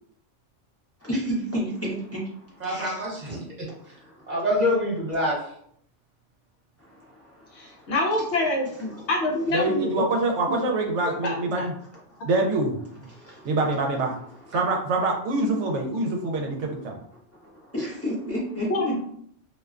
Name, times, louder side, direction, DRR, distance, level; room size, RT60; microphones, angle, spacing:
voice 1, 1.0-3.2 3.7-4.4 6.8-7.9 8.7-9.1 9.5-9.6 11.8-12.2 13.1-13.5 14.1-14.6 16.0-16.1 16.4-16.9 17.4-19.0, equal, 25° left, 0.3 m, -34 dB
voice 2, 2.6-3.7 4.3-5.4, left 1 dB, 40° right, 0.9 m, -26 dB
voice 3, 7.5-9.9 10.5-10.6 11.2-11.7 18.7-19.0, left 2 dB, 70° left, 0.8 m, -26 dB
voice 4, 9.5-11.7 12.2-12.8 13.4-14.2 14.5-17.0, right 2 dB, 70° right, 0.8 m, -25 dB
2.4 x 2.2 x 2.3 m
omnidirectional pair, 1.3 m